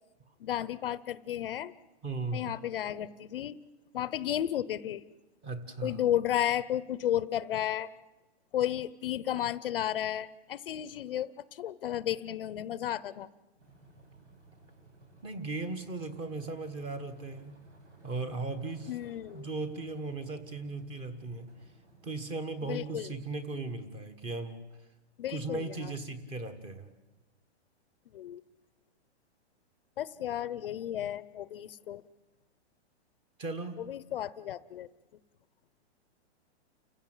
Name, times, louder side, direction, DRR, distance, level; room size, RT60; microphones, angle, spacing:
voice 1, 0.4-1.7 2.3-3.6 3.9-5.0 5.8-7.9 8.5-13.3 18.9-19.5 22.6-23.1 25.2-25.9 28.1-28.4 30.0-32.0 33.8-34.9, left 11 dB, 55° left, 17 dB, 0.8 m, -33 dB
voice 2, 2.0-2.5 5.4-6.0 15.2-17.6 18.0-18.9 19.3-21.5 22.0-24.6 25.3-26.9 33.4-33.8, right 3 dB, 15° right, 11 dB, 1.4 m, -37 dB
sound 1, 13.6-24.0, right 2 dB, 90° right, 7.2 m, -59 dB
29.5 x 16.0 x 9.0 m, 1.1 s
hypercardioid pair, 165°, 34 cm